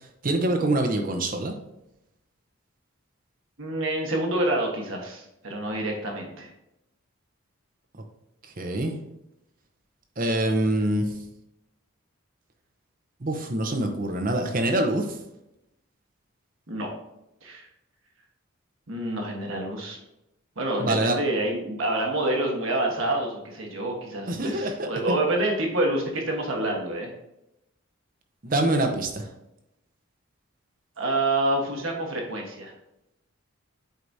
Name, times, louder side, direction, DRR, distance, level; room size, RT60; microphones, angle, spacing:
voice 1, 0.2-1.5 8.6-8.9 10.2-11.0 13.2-15.2 20.8-21.2 24.3-25.2 28.4-29.3, right 1 dB, 40° right, 4 dB, 0.7 m, -25 dB
voice 2, 3.6-6.5 16.7-16.9 17.4-17.6 18.9-20.0 20.6-27.1 31.0-32.7, right 1 dB, 70° right, 1 dB, 1.3 m, -27 dB
8.0 x 4.7 x 2.7 m, 0.86 s
head